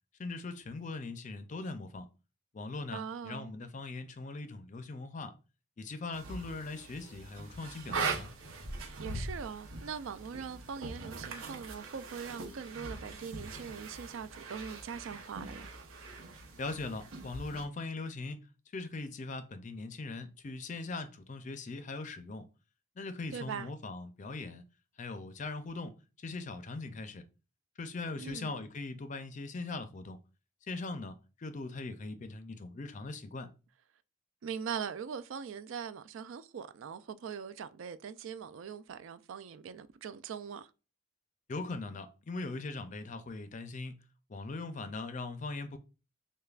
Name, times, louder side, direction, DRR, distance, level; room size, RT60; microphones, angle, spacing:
voice 1, 0.2-2.1 2.5-5.3 5.8-8.3 16.6-18.4 18.7-22.5 23.0-24.6 25.0-27.3 27.8-30.2 30.7-33.5 41.5-44.0 44.3-45.8, left 3 dB, 35° left, 0.4 m, -40 dB
voice 2, 2.9-3.5 9.0-15.7 23.3-23.7 28.2-28.7 34.4-40.7, right 7 dB, 70° right, 0.3 m, -41 dB
sound 1, 6.1-17.6, right 3 dB, 90° right, 0.9 m, -41 dB
6.4 x 2.2 x 2.4 m
head